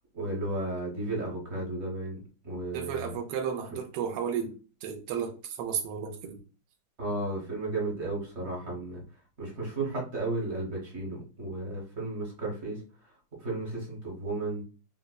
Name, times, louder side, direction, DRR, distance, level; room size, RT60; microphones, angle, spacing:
voice 1, 0.1-2.2 2.4-3.2 7.0-9.0 9.4-12.8 13.4-14.6, right 2 dB, 40° right, 1.1 m, -33 dB
voice 2, 2.7-4.5 4.8-6.4, right 7 dB, 85° right, 1.6 m, -33 dB
5.2 x 2.1 x 2.2 m
omnidirectional pair, 2.4 m